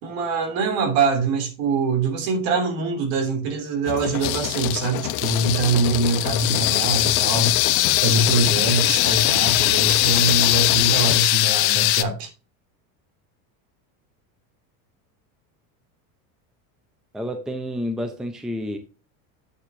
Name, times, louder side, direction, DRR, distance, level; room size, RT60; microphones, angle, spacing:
voice 1, 0.0-7.5 8.0-12.3, right 3 dB, 55° right, 3.0 m, -23 dB
sound 1, 3.9-11.2, left 12 dB, 45° left, 0.8 m, -30 dB
sound 2, 4.2-12.0, left 18 dB, 80° left, 0.9 m, -21 dB
voice 2, 17.1-18.8, equal, ahead, 0.6 m, -29 dB
8.7 x 7.2 x 2.6 m
cardioid pair, 155°, 42 cm